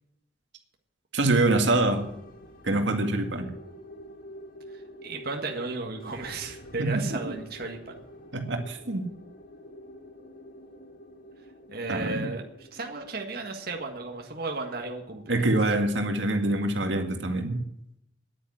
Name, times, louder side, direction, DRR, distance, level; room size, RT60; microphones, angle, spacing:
voice 1, 1.1-2.1 2.6-3.5 6.8-7.2 8.3-9.0 11.9-12.3 15.3-17.6, right 2 dB, 80° right, 5 dB, 2.0 m, -25 dB
sound 1, 1.6-15.1, equal, 50° left, 2.0 m, -48 dB
voice 2, 4.7-8.0 11.7-15.6, right 3 dB, 55° right, 2 dB, 1.7 m, -35 dB
10.5 x 9.1 x 9.9 m, 0.78 s
head